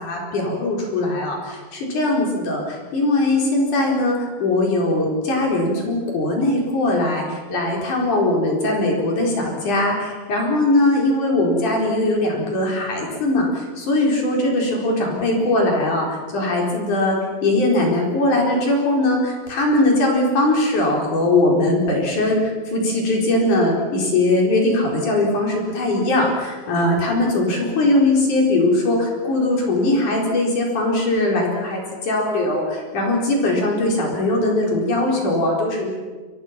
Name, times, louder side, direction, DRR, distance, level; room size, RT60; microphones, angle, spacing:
voice 1, 0.0-16.1 16.3-35.9, left 2 dB, 45° left, -1 dB, 5.6 m, -20 dB
28.5 x 24.5 x 6.0 m, 1.4 s
omnidirectional pair, 5.3 m